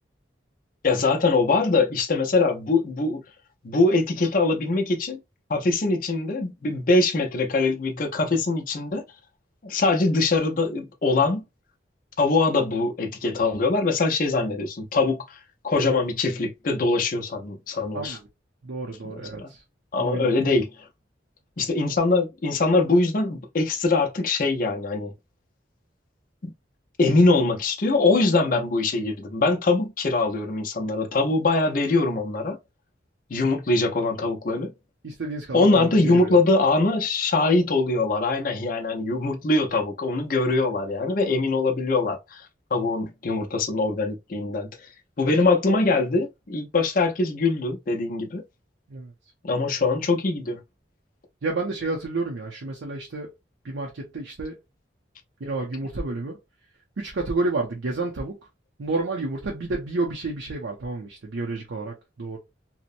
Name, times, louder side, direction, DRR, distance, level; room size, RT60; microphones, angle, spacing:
voice 1, 0.8-3.2 3.6-5.2 5.5-9.0 9.6-11.4 12.2-18.2 19.0-19.5 19.9-20.9 21.6-25.1 26.4-26.5 27.0-32.6 33.3-34.7 35.5-44.9 45.2-48.4 49.4-50.6, left 3 dB, 45° left, 0.5 m, -23 dB
voice 2, 17.9-18.3 18.6-19.6 20.0-20.4 35.0-36.4 48.9-49.1 51.4-53.3 53.6-54.6 55.4-56.4 57.0-58.4 58.8-62.4, right 3 dB, 80° right, 0.6 m, -30 dB
2.8 x 2.1 x 2.5 m
head